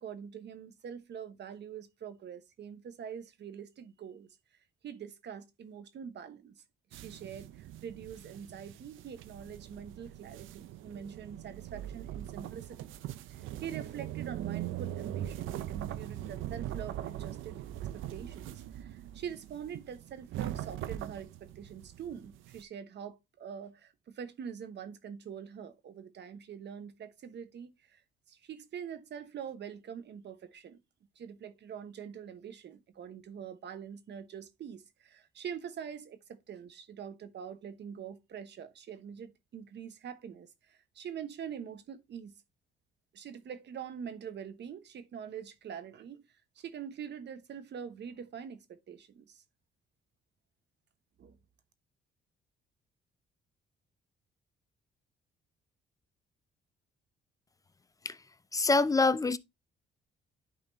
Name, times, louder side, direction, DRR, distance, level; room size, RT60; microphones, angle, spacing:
voice 1, 0.0-4.3 4.8-6.6 6.9-12.9 13.3-28.0 28.3-30.8 31.2-42.3 43.1-46.2 46.6-49.4 51.2-51.4, right 8 dB, 60° right, 1.1 m, -44 dB
sound 1, 6.9-22.6, right 12 dB, 85° right, 0.6 m, -41 dB
voice 2, 58.5-59.4, left 3 dB, 15° left, 0.5 m, -25 dB
11.0 x 4.2 x 2.7 m
cardioid pair, 90°, 20 cm